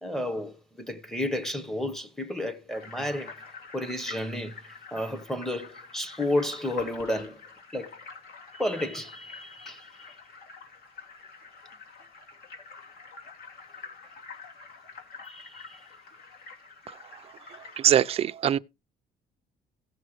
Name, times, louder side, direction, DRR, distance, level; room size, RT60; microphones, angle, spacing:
voice 1, 0.0-3.4 3.7-7.4 7.7-8.0 8.5-10.2 15.2-15.8, left 1 dB, ahead, 1.0 m, -32 dB
sound 1, 2.7-17.8, left 5 dB, 60° left, 2.6 m, -47 dB
voice 2, 17.8-18.6, right 10 dB, 35° right, 0.4 m, -22 dB
16.0 x 6.3 x 3.1 m
cardioid pair, 165°, 17 cm